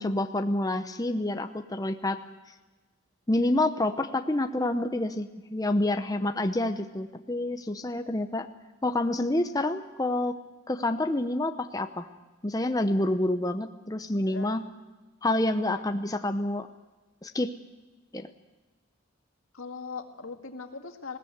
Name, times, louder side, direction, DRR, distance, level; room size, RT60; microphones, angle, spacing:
voice 1, 0.0-2.2 3.3-8.5 8.8-10.4 10.7-12.1 12.4-14.6 15.2-16.7 17.2-17.5 18.1-18.3, left 1 dB, 20° left, 8 dB, 0.7 m, -28 dB
voice 2, 6.0-6.4 14.3-14.6 15.6-15.8 19.5-21.2, left 4 dB, 90° left, 6 dB, 1.9 m, -40 dB
20.0 x 17.0 x 8.1 m, 1.2 s
head